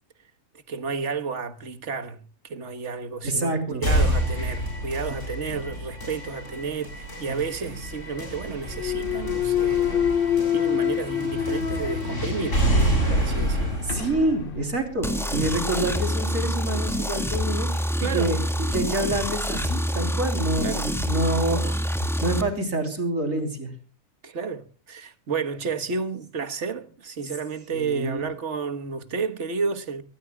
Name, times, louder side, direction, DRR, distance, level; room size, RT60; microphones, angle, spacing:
voice 1, 0.7-3.6 3.8-12.6 13.1-13.8 18.0-18.4 20.6-20.9 21.5-21.8 24.2-30.0, right 5 dB, 60° right, 1.6 m, -31 dB
voice 2, 3.2-3.9 7.3-7.4 13.3-13.4 13.8-17.7 18.1-18.4 18.7-21.7 22.2-23.7 27.7-28.3, right 2 dB, 75° right, 3.9 m, -27 dB
sound 1, 3.8-15.8, equal, 65° left, 7.8 m, -28 dB
Thump thud, 8.7-12.7 13.2-17.9, left 9 dB, 45° left, 0.9 m, -28 dB
sound 2, 15.0-22.4, equal, ahead, 1.7 m, -26 dB
24.0 x 18.5 x 2.3 m
omnidirectional pair, 1.4 m